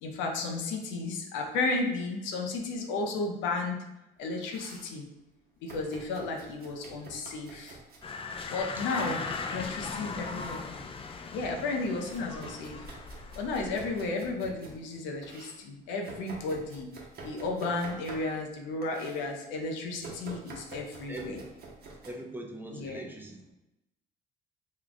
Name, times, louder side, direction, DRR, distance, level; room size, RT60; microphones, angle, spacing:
voice 1, 0.0-3.8 4.2-5.1 5.6-7.8 8.5-9.2 9.5-10.6 11.3-12.9 13.4-16.9 17.2-21.4 22.7-23.0, left 3 dB, 85° left, 2 dB, 0.6 m, -33 dB
Domestic sounds home sounds, 4.2-4.9 5.7-8.1 8.8-9.3 10.0-10.7 11.1-14.8 15.2-18.5 18.8-19.3 20.0-22.1, right 3 dB, 55° right, 0.9 m, -48 dB
sound 1, 8.0-14.1, left 4 dB, 30° left, 0.4 m, -39 dB
voice 2, 8.7-9.1 21.1-21.4 22.0-23.5, right 1 dB, 10° right, 1 dB, 0.6 m, -42 dB
3.1 x 2.2 x 3.9 m, 0.92 s
supercardioid pair, 80°, 19 cm